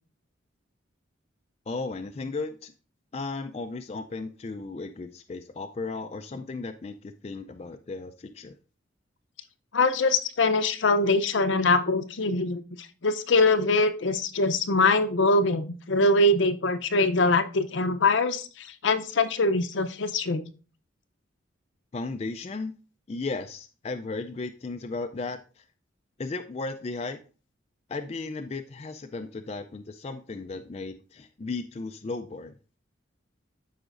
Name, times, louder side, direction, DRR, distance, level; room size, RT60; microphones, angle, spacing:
voice 1, 1.7-2.7 3.1-8.5 21.9-22.7 23.1-25.6 26.2-27.2 27.9-32.5, left 3 dB, 30° left, 7 dB, 0.3 m, -35 dB
voice 2, 9.7-12.6 13.0-20.4, left 2 dB, 70° left, 10 dB, 0.6 m, -23 dB
13.0 x 4.9 x 2.5 m, 0.37 s
head